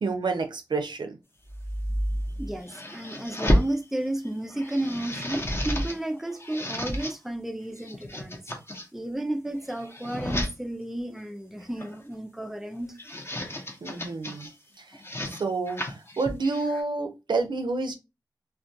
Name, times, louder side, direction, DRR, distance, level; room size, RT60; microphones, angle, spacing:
voice 1, 0.0-1.2 13.8-14.5 15.4-17.9, right 3 dB, 75° right, 0.5 m, -29 dB
sound 1, 1.5-3.7 4.2-6.0 6.3-7.1 7.7-8.8 9.5-10.5 11.6-12.0 12.8-14.5 14.9-16.8, equal, 30° left, 0.7 m, -31 dB
voice 2, 2.4-8.4 8.9-13.0, right 1 dB, 5° right, 0.3 m, -33 dB
2.2 x 2.2 x 2.6 m
wide cardioid pair, 90°, 8 cm